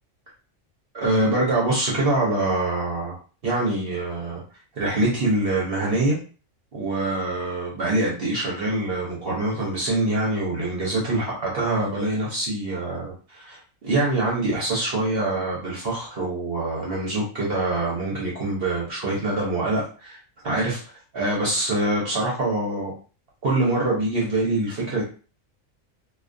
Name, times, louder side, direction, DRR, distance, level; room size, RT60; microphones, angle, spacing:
voice 1, 0.9-3.2 3.4-4.4 4.7-6.2 6.7-20.2 20.4-22.9 23.4-25.0, right 2 dB, 55° right, -4 dB, 0.8 m, -24 dB
2.4 x 2.3 x 2.5 m, 0.37 s
omnidirectional pair, 1.4 m